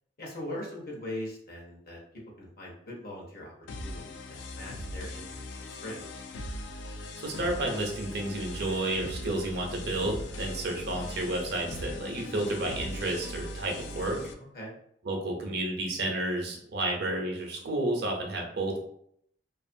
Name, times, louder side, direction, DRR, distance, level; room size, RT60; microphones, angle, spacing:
voice 1, 0.2-2.0 2.4-3.5 3.8-6.0 14.5-14.8, left 1 dB, 55° left, -2 dB, 0.8 m, -41 dB
sound 1, 3.7-14.3, left 1 dB, 75° left, 0.3 m, -40 dB
voice 2, 7.2-14.2 15.0-18.8, right 1 dB, 60° right, 1 dB, 0.6 m, -31 dB
2.5 x 2.4 x 2.6 m, 0.70 s
head